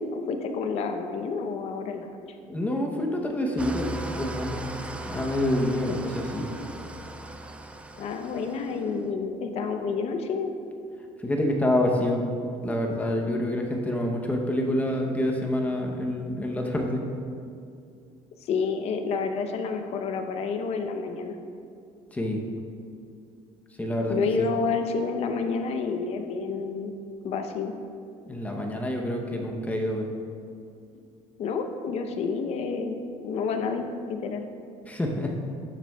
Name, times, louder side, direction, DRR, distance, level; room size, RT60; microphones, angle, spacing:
voice 1, 0.0-2.1 8.0-10.5 18.5-21.4 24.1-26.9 27.2-27.7 31.4-34.5, left 5 dB, 50° left, 6 dB, 0.7 m, -29 dB
voice 2, 2.5-4.6 5.0-6.5 11.2-12.2 12.6-17.0 22.1-22.4 23.8-24.5 28.3-30.1 34.8-35.4, left 1 dB, 10° left, 1 dB, 0.8 m, -27 dB
Engine starting / Idling, 3.6-9.0, right 1 dB, 10° right, 0.3 m, -37 dB
11.5 x 7.5 x 2.3 m, 2.4 s
cardioid pair, 150°, 13 cm